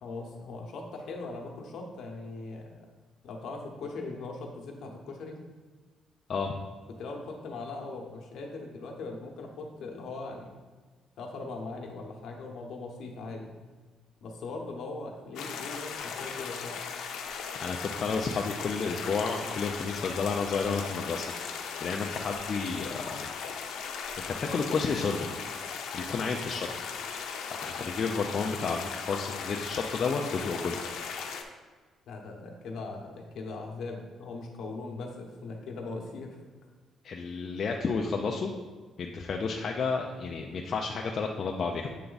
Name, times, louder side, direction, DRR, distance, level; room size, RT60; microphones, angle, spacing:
voice 1, 0.0-2.8 3.2-5.4 7.0-10.5 11.2-13.6 14.2-16.8 32.1-36.4, left 3 dB, 60° left, 1 dB, 1.0 m, -40 dB
sound 1, 15.3-31.4, left 6 dB, 85° left, 0.6 m, -37 dB
voice 2, 17.6-21.3 21.8-23.3 24.4-25.4 25.9-26.7 27.5-30.8 37.0-38.5 39.0-42.0, left 4 dB, 40° left, 1 dB, 0.4 m, -31 dB
8.3 x 3.4 x 3.9 m, 1.4 s
cardioid pair, 165°, 0 cm